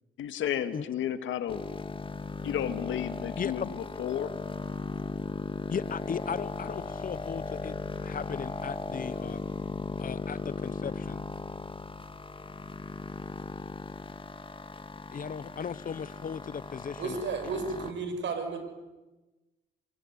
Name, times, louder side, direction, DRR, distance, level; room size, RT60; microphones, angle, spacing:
voice 1, 0.2-1.6 2.4-4.3, left 10 dB, 80° left, 10 dB, 2.1 m, -32 dB
sound 1, 1.5-17.9, left 3 dB, 25° left, 2.1 m, -37 dB
voice 2, 3.4-3.8 5.7-7.7 8.0-9.4 10.0-11.3 15.1-17.2, left 7 dB, 45° left, 16 dB, 1.2 m, -37 dB
voice 3, 17.0-18.6, right 4 dB, 65° right, 6 dB, 6.5 m, -33 dB
26.5 x 22.0 x 9.7 m, 1.1 s
cardioid pair, 90°, 20 cm